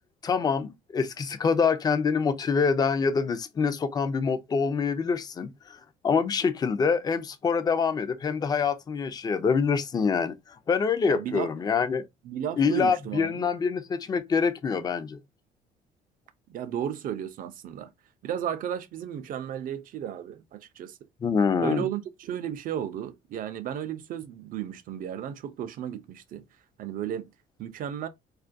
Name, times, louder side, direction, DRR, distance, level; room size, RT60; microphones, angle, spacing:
voice 1, 0.2-5.8 6.0-10.4 10.7-12.0 12.6-15.2 21.2-21.8, left 5 dB, 25° left, 0.3 m, -25 dB
voice 2, 11.1-11.5 12.2-13.5 16.5-17.9 18.2-21.0 21.6-26.4 26.8-27.3 27.6-28.1, right 10 dB, 55° right, 0.4 m, -34 dB
2.3 x 2.2 x 2.5 m
cardioid pair, 110°, 17 cm